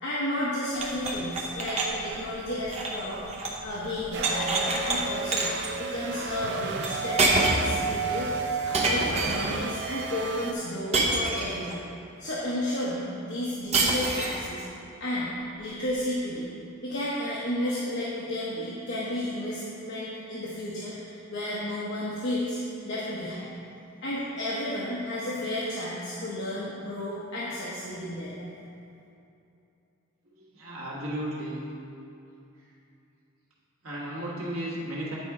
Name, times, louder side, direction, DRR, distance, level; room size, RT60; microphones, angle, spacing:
voice 1, 0.0-5.5 5.8-11.8 12.2-14.6 15.0-16.5 16.8-23.5 24.0-28.5, left 1 dB, 55° left, -7 dB, 0.9 m, -32 dB
sound 1, 0.7-3.6 3.9-5.0 5.3-5.7 6.8-6.9 7.2-7.8 8.7-9.6 10.9-11.7 13.7-14.5, right 2 dB, 30° right, 0.7 m, -27 dB
sound 2, 4.1-10.5, right 4 dB, 55° right, 0.4 m, -32 dB
voice 2, 30.3-31.7 33.8-35.1, right 1 dB, 80° right, -6 dB, 1.6 m, -34 dB
9.0 x 4.2 x 4.8 m, 2.7 s
head